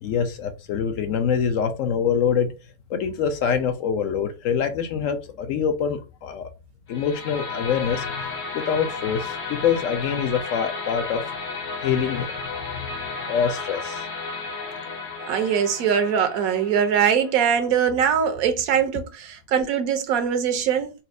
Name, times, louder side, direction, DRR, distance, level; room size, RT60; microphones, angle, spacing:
voice 1, 0.0-2.5 2.9-6.5 6.9-11.2 11.8-12.3 12.7-12.9 13.3-14.0, left 7 dB, 70° left, 0.9 m, -25 dB
sound 1, 6.9-17.9, left 4 dB, 40° left, 0.8 m, -33 dB
voice 2, 15.2-20.9, right 8 dB, 80° right, 1.1 m, -22 dB
4.2 x 2.0 x 2.5 m
omnidirectional pair, 1.5 m